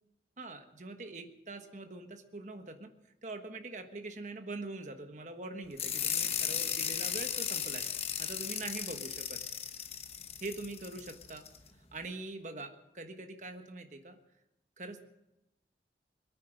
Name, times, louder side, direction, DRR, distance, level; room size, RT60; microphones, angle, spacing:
voice 1, 0.4-2.9 3.2-7.8 8.2-9.4 10.4-11.4 11.9-14.2 14.8-15.0, right 2 dB, 45° right, 6 dB, 1.3 m, -43 dB
sound 1, 5.8-11.6, left 8 dB, 35° left, 1.0 m, -36 dB
22.0 x 9.6 x 6.5 m, 0.94 s
head